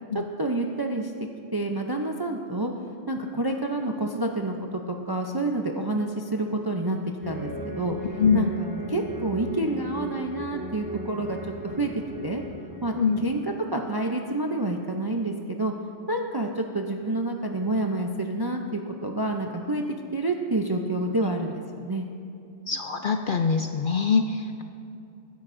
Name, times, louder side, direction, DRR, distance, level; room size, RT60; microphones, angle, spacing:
voice 1, 0.4-1.1 1.5-2.7 3.1-7.0 7.3-8.0 8.3-11.4 11.6-11.9 12.2-12.4 12.8-13.0 13.2-13.4 13.7-15.7 16.1-19.8 20.1-22.1, right 2 dB, 35° right, 2 dB, 0.4 m, -28 dB
sound 1, 7.2-13.3, left 1 dB, 15° right, 1.4 m, -37 dB
voice 2, 22.7-24.6, left 5 dB, 60° left, 5 dB, 0.6 m, -24 dB
20.5 x 10.5 x 2.6 m, 2.6 s
omnidirectional pair, 1.3 m